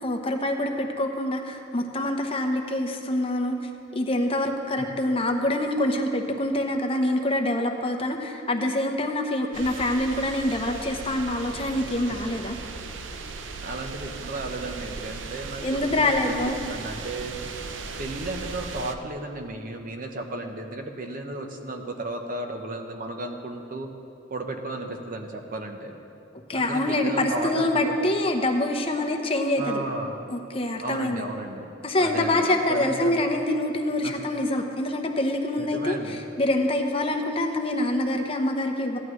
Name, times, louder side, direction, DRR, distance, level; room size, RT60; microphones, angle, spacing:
voice 1, 0.0-12.6 15.6-16.6 26.5-29.8 30.3-31.3 31.8-39.0, left 1 dB, 30° left, 3 dB, 0.9 m, -25 dB
sound 1, 9.5-18.9, right 4 dB, 90° right, 0.6 m, -37 dB
voice 2, 13.6-17.4 18.0-23.9 24.3-25.9 26.5-28.0 29.6-30.2 30.8-33.1 34.0-34.1 35.6-36.2, right 2 dB, 50° right, 4 dB, 0.9 m, -34 dB
15.0 x 11.0 x 3.2 m, 2.7 s
head